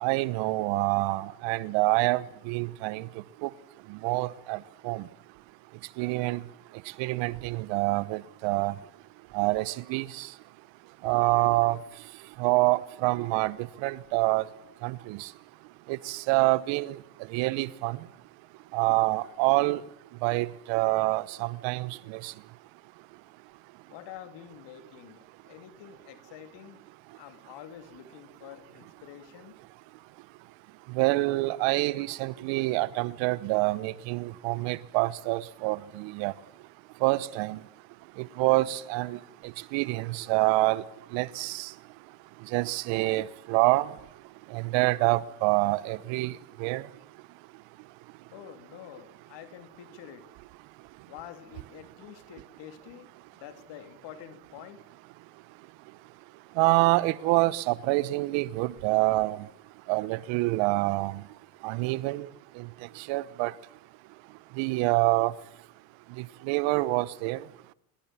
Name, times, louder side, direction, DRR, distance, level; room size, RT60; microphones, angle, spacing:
voice 1, 0.0-3.0 3.4-3.5 4.0-4.6 4.8-5.0 6.0-6.4 7.0-8.7 9.3-10.3 11.0-11.8 12.4-13.6 13.8-14.4 14.8-15.3 15.9-17.0 17.3-18.0 18.7-19.8 20.2-22.3 31.0-36.3 37.0-37.6 38.2-39.2 39.7-40.8 41.1-41.7 42.5-43.9 44.5-46.3 46.6-46.8 56.6-59.4 59.9-61.2 61.6-62.3 63.1-63.5 64.6-65.3 66.5-67.4, right 21 dB, 70° right, 1.1 m, -26 dB
voice 2, 23.9-26.8 27.1-29.6 48.3-50.3 51.1-53.1 53.3-54.8, left 11 dB, 65° left, 2.9 m, -47 dB
25.0 x 22.5 x 7.4 m
hypercardioid pair, 60°, 46 cm